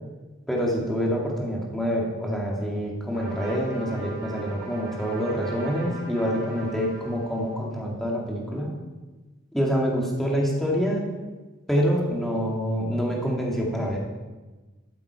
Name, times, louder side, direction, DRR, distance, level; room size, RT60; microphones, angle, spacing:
voice 1, 0.5-8.7 9.5-11.0 11.7-14.0, equal, ahead, -3 dB, 1.9 m, -26 dB
Trumpet, 3.1-7.7, right 2 dB, 55° right, 3.0 m, -41 dB
13.5 x 7.6 x 4.6 m, 1.2 s
head